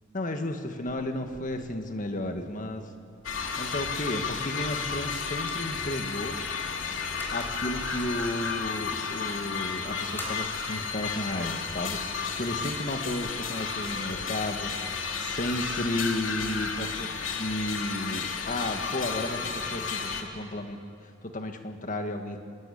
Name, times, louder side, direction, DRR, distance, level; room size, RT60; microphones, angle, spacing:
voice 1, 0.1-2.9 3.6-6.4 7.3-12.0 12.3-14.7 15.2-17.1 17.4-20.8 21.2-22.4, left 1 dB, 45° left, 6 dB, 1.7 m, -33 dB
sound 1, 0.9-14.2, equal, 10° left, 4.9 m, -50 dB
sound 2, 3.2-20.2, left 5 dB, 85° left, 2.5 m, -33 dB
26.0 x 20.5 x 8.6 m, 2.3 s
head